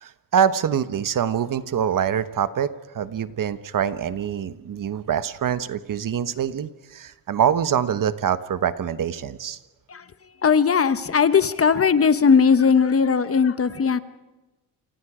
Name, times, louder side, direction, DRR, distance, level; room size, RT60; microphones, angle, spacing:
voice 1, 0.0-9.6, right 8 dB, 55° right, 12 dB, 1.2 m, -25 dB
voice 2, 10.4-14.0, left 6 dB, 35° left, 12 dB, 1.1 m, -18 dB
28.5 x 25.5 x 5.0 m, 1.1 s
cardioid pair, 100°, 40 cm